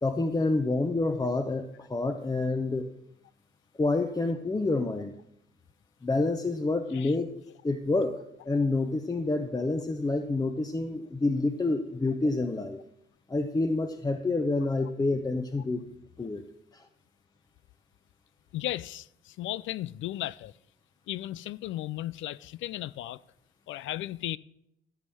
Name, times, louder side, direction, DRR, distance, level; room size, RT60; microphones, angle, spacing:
voice 1, 0.0-2.9 3.8-5.1 6.0-7.3 7.6-12.8 13.3-15.8 16.2-16.4 16.7-16.9, left 2 dB, 20° left, 0.8 m, -28 dB
voice 2, 18.5-20.5 21.1-23.2 23.7-24.4, left 14 dB, 75° left, 0.4 m, -35 dB
14.5 x 5.5 x 7.7 m
cardioid pair, 90°, 20 cm